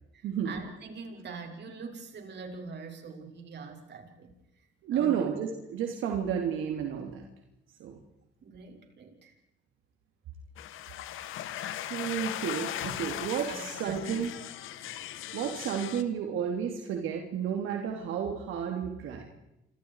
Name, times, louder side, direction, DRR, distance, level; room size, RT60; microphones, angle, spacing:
voice 1, 0.1-4.3 4.9-5.3 8.4-9.3 13.5-14.4, right 4 dB, 60° right, 4 dB, 6.5 m, -43 dB
voice 2, 4.8-7.2 7.8-8.0 11.9-14.3 15.3-19.3, right 8 dB, 85° right, 2 dB, 3.3 m, -31 dB
sound 1, 10.6-16.0, left 12 dB, 90° left, 1.8 m, -38 dB
29.5 x 26.0 x 4.9 m, 0.86 s
cardioid pair, 90°, 20 cm